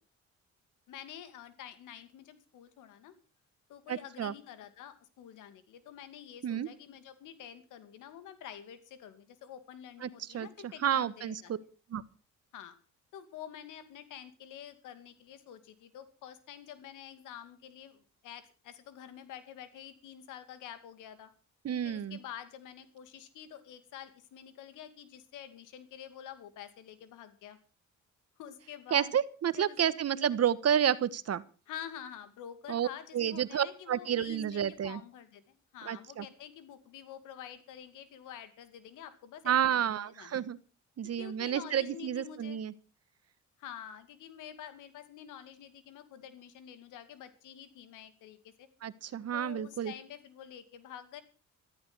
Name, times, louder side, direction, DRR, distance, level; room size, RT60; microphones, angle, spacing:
voice 1, 0.9-3.1 3.7-11.5 12.5-12.8 13.1-21.3 21.8-27.6 28.4-29.1 29.5-29.8 31.7-40.4 41.1-42.6 43.6-48.7 49.3-51.2, left 10 dB, 90° left, 11 dB, 2.5 m, -48 dB
voice 2, 3.9-4.3 6.4-6.7 10.0-11.4 11.9-12.0 21.6-22.2 28.9-31.4 32.7-32.9 33.1-35.0 35.8-36.2 39.4-40.6 41.0-42.7 48.8-49.9, right 9 dB, 55° right, 16 dB, 1.4 m, -30 dB
14.0 x 13.5 x 6.1 m, 0.36 s
cardioid pair, 90°, 30 cm